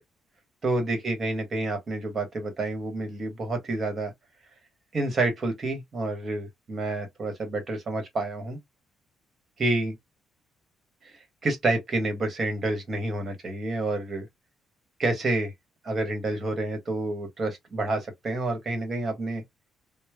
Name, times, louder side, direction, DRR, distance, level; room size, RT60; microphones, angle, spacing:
voice 1, 0.6-4.1 4.9-8.6 9.6-9.9 11.0-11.1 11.4-14.3 15.0-15.5 15.8-19.4, right 2 dB, 45° right, 1.2 m, -29 dB
3.1 x 2.1 x 2.2 m
cardioid pair, 90°, 0 cm